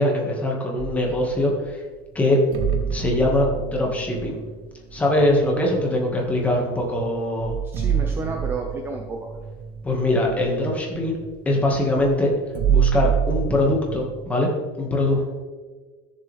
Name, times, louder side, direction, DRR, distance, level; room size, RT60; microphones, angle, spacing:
voice 1, 0.0-1.8 2.1-2.4 2.9-4.4 4.9-7.6 9.8-11.2 11.5-12.3 12.7-14.5 14.8-15.3, left 1 dB, 10° left, -1 dB, 1.9 m, -22 dB
sound 1, 0.8-1.7 2.5-6.5 7.0-7.1 7.3-14.2, right 8 dB, 45° right, 1.0 m, -27 dB
voice 2, 7.6-9.4 15.1-15.2, right 3 dB, 15° right, 2 dB, 0.8 m, -32 dB
14.5 x 7.0 x 3.6 m, 1.4 s
cardioid pair, 160°, 13 cm